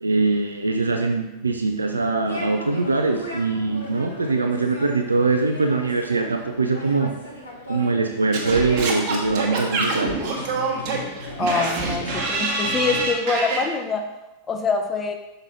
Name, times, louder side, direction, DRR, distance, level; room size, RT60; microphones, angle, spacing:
voice 1, 0.0-7.1 7.7-10.1, right 3 dB, 80° right, 4 dB, 0.4 m, -22 dB
sound 1, 2.3-13.0, left 1 dB, 85° left, 1.4 m, -37 dB
Singing / Scratching (performance technique), 8.3-13.6, right 3 dB, 45° right, 1.2 m, -26 dB
voice 2, 11.4-14.1 14.5-15.1, left 4 dB, 20° left, 5 dB, 0.7 m, -24 dB
6.1 x 3.9 x 4.1 m, 0.99 s
figure-of-eight pair, 90°, 0 cm